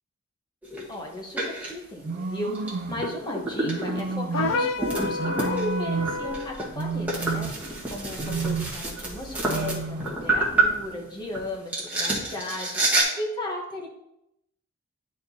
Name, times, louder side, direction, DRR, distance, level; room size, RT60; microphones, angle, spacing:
sound 1, 0.6-0.9 1.4-1.7 2.5-2.7 3.0-11.4 11.7-13.0, right 2 dB, 5° right, 1.4 m, -28 dB
voice 1, 0.9-13.9, left 1 dB, 20° left, 0 dB, 1.1 m, -35 dB
sound 2, 2.0-3.1 3.6-4.7 5.2-6.3 6.7-7.8 8.2-8.9 9.4-10.2, right 4 dB, 40° right, 0.4 m, -31 dB
sound 3, 4.3-6.5, left 3 dB, 60° left, 0.5 m, -29 dB
10.5 x 4.4 x 2.8 m, 0.82 s
head